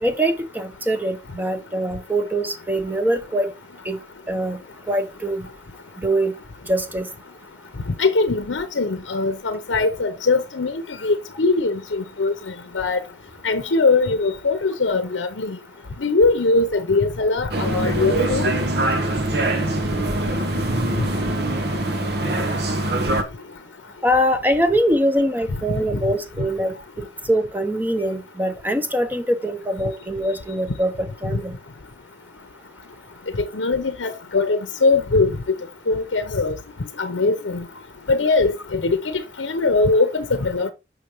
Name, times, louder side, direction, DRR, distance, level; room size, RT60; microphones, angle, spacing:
voice 1, 0.0-3.5 3.8-4.0 4.3-4.6 4.9-5.5 6.0-6.3 6.7-7.1 24.0-31.6, right 1 dB, 10° right, 0.9 m, -23 dB
voice 2, 8.0-12.3 12.7-13.0 13.4-15.6 16.0-18.5 33.4-35.4 35.9-36.6 37.0-37.6 38.1-40.7, left 3 dB, 90° left, 0.8 m, -21 dB
sound 1, 17.5-23.2, right 1 dB, 60° right, 1.2 m, -23 dB
6.5 x 6.3 x 3.0 m
head